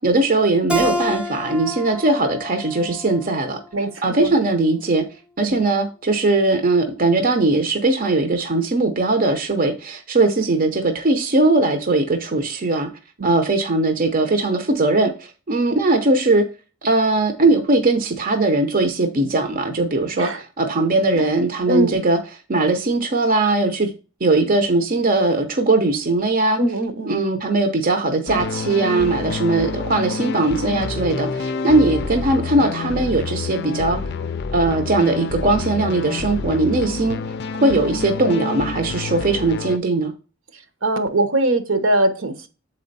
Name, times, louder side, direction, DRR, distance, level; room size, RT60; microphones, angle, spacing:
voice 1, 0.0-3.6 4.0-5.1 5.4-12.9 13.2-16.4 16.8-22.2 22.5-23.9 24.2-26.6 27.1-34.0 34.5-37.2 37.6-40.1, right 2 dB, 45° right, 0.7 m, -19 dB
Keyboard (musical), 0.7-3.9, left 1 dB, 5° right, 0.5 m, -29 dB
voice 2, 3.7-4.5 5.4-5.6 13.2-13.3 20.1-20.4 21.1-21.2 21.7-22.0 26.6-27.2 40.5-42.5, right 1 dB, 70° right, 1.0 m, -22 dB
sound 1, 28.3-39.8, left 4 dB, 55° left, 0.4 m, -28 dB
7.0 x 4.3 x 4.0 m
head